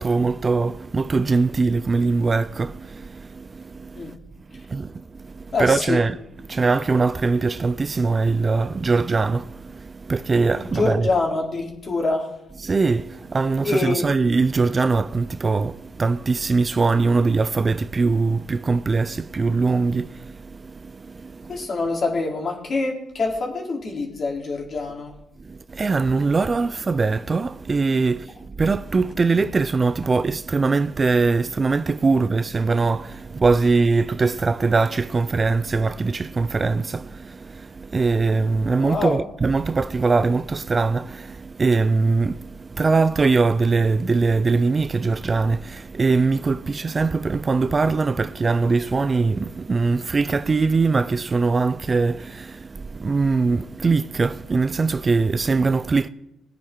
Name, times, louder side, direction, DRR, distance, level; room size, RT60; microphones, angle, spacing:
voice 1, 0.0-4.2 4.5-6.2 6.4-11.1 12.6-21.7 25.4-56.1, right 4 dB, 30° right, 0.5 m, -22 dB
voice 2, 5.5-6.0 10.5-12.3 13.6-14.1 21.5-25.1 38.8-39.2, left 3 dB, 45° left, 3.8 m, -25 dB
19.5 x 9.3 x 4.6 m
cardioid pair, 90°, 0 cm